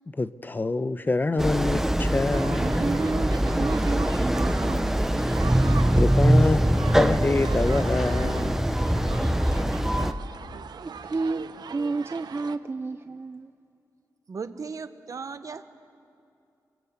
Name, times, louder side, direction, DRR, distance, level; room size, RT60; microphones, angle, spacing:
voice 1, 0.1-2.8 5.9-6.7 6.9-8.7, left 3 dB, 25° left, 0.8 m, -26 dB
sound 1, 1.4-10.1, right 1 dB, 5° right, 0.8 m, -23 dB
sound 2, 2.3-12.6, right 6 dB, 75° right, 0.8 m, -40 dB
voice 2, 2.5-4.9 9.2-9.3 10.8-13.5, right 3 dB, 35° right, 0.6 m, -31 dB
voice 3, 14.3-15.6, right 5 dB, 50° right, 1.2 m, -36 dB
28.5 x 23.5 x 8.3 m
wide cardioid pair, 105°, 7 cm